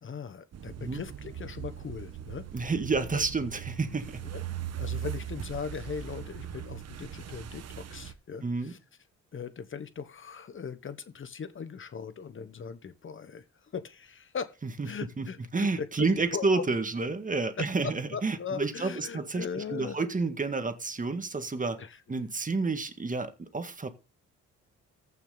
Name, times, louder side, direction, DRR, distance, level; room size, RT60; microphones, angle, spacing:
voice 1, 0.0-2.7 3.1-3.2 4.3-4.4 4.8-8.8 9.3-13.4 13.7-14.5 14.8-15.9 16.1-16.7 17.6-20.0 21.8-22.0, left 6 dB, 40° left, 1.1 m, -39 dB
sound 1, 0.5-8.1, right 10 dB, 55° right, 1.3 m, -39 dB
voice 2, 2.5-4.2 8.4-8.7 14.8-14.9 15.2-15.3 15.5-19.5 19.7-21.8 22.1-23.9, right 3 dB, 25° right, 1.7 m, -30 dB
14.5 x 6.0 x 3.9 m
cardioid pair, 90°, 30 cm